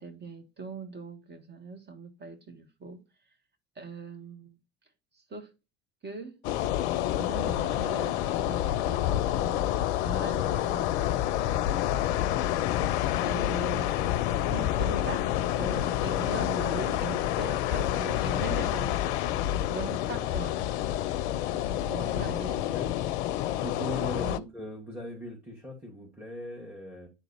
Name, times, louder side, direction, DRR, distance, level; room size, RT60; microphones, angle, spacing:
voice 1, 0.0-3.0 3.8-4.6 5.1-5.5 6.0-6.4 7.2-9.6 10.0-11.6 13.2-14.0 14.3-15.3 15.6-19.0 19.7-20.6 21.5-22.6 24.1-24.5, right 4 dB, 30° right, 2.0 m, -40 dB
sound 1, 6.4-24.4, left 12 dB, 65° left, 0.6 m, -28 dB
voice 2, 21.5-22.9 23.6-27.1, equal, 5° right, 2.4 m, -40 dB
10.5 x 3.9 x 4.3 m
hypercardioid pair, 65°, 35 cm